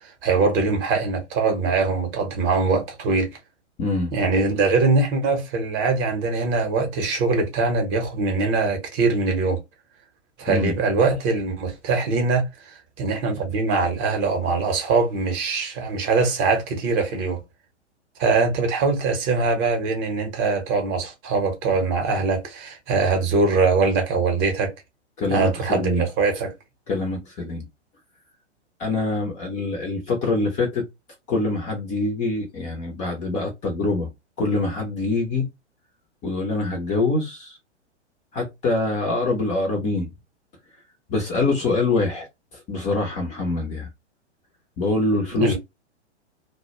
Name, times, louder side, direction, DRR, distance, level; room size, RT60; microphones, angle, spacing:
voice 1, 0.0-3.3 4.1-9.6 10.4-17.4 18.2-24.7 25.3-26.5 45.3-45.6, right 4 dB, 30° right, 0.8 m, -22 dB
voice 2, 3.8-4.1 10.5-10.7 25.2-26.0 26.9-27.6 28.8-30.9 31.3-34.1 34.4-35.5 36.2-37.6 38.3-40.1 41.1-42.3 42.7-43.9 44.8-45.6, left 3 dB, 20° left, 0.5 m, -24 dB
2.2 x 2.1 x 2.8 m
hypercardioid pair, 115°, 35 cm